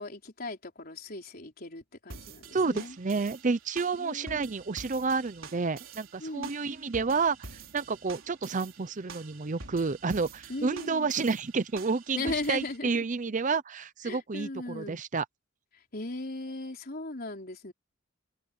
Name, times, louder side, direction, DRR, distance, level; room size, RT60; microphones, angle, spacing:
voice 1, 0.0-3.0 4.0-4.5 6.2-6.7 10.5-11.1 12.2-12.9 14.0-15.0 15.9-17.7, left 2 dB, 50° left, 4.1 m, -37 dB
sound 1, 2.1-12.8, right 4 dB, 90° right, 4.1 m, -48 dB
voice 2, 2.5-7.4 7.7-15.2, right 4 dB, 40° right, 0.6 m, -30 dB
head